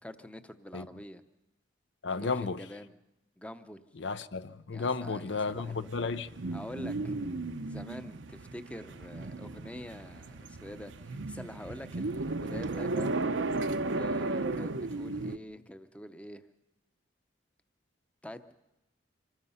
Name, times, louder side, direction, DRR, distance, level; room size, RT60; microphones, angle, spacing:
voice 1, 0.0-1.2 2.1-2.9 3.4-3.9 4.7-5.9 6.5-7.2 7.7-13.1 13.9-16.5 18.2-18.5, left 1 dB, 5° left, 0.7 m, -46 dB
voice 2, 2.0-2.6 4.0-6.3, left 4 dB, 70° left, 0.7 m, -33 dB
sound 1, 5.3-15.4, right 2 dB, 85° right, 0.9 m, -35 dB
26.0 x 19.5 x 5.6 m
head